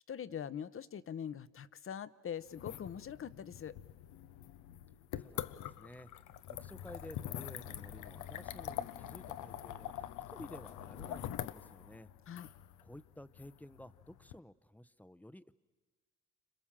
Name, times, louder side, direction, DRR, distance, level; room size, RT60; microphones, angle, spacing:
voice 1, 0.1-3.8 12.3-12.5, left 8 dB, 45° left, 16 dB, 0.9 m, -43 dB
sound 1, 2.5-14.3, left 12 dB, 90° left, 0.8 m, -45 dB
voice 2, 5.2-12.1 12.8-15.5, left 1 dB, 5° left, 15 dB, 0.7 m, -53 dB
29.0 x 26.0 x 7.4 m, 1.4 s
cardioid pair, 90°, 30 cm